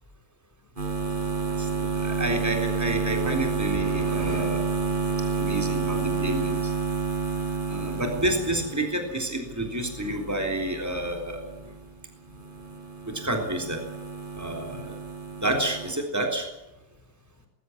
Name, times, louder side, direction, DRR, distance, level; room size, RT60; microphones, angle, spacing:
sound 1, 0.8-12.0 12.3-15.9, right 4 dB, 35° right, 6.0 m, -30 dB
voice 1, 1.6-4.6 5.4-6.7 7.7-11.4 13.1-13.8 14.3-15.0 15.4-16.5, right 1 dB, 10° right, 3 dB, 3.7 m, -29 dB
21.0 x 15.5 x 9.7 m, 0.93 s
omnidirectional pair, 1.4 m